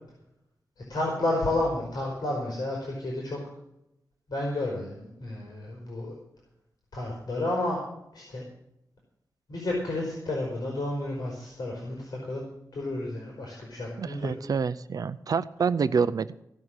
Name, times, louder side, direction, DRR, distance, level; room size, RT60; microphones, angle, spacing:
voice 1, 0.9-3.4 4.3-6.1 6.9-7.8 8.1-8.4 9.5-12.4 12.7-14.3, left 1 dB, 70° left, -2 dB, 4.3 m, -31 dB
voice 2, 14.0-16.4, right 5 dB, 65° right, 14 dB, 0.5 m, -27 dB
16.5 x 6.3 x 8.8 m, 0.82 s
wide cardioid pair, 140°, 7 cm